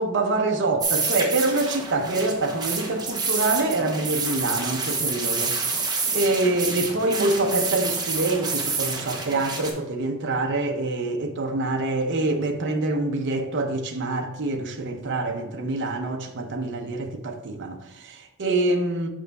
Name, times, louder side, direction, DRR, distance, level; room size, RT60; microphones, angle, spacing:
voice 1, 0.0-19.1, right 2 dB, 55° right, 0.7 m, -26 dB
sound 1, 0.8-9.7, right 4 dB, 20° right, 0.9 m, -28 dB
6.3 x 5.4 x 3.5 m
head